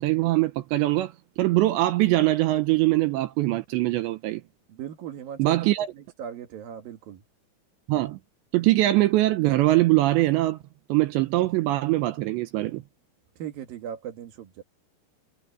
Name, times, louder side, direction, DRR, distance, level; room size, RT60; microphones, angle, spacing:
voice 1, 0.0-4.4 5.4-5.9 7.9-8.2 8.5-10.6 10.9-12.8, right 17 dB, 75° right, 2.8 m, -22 dB
voice 2, 4.7-7.2 13.4-14.6, right 9 dB, 60° right, 2.9 m, -38 dB
omnidirectional pair, 5.7 m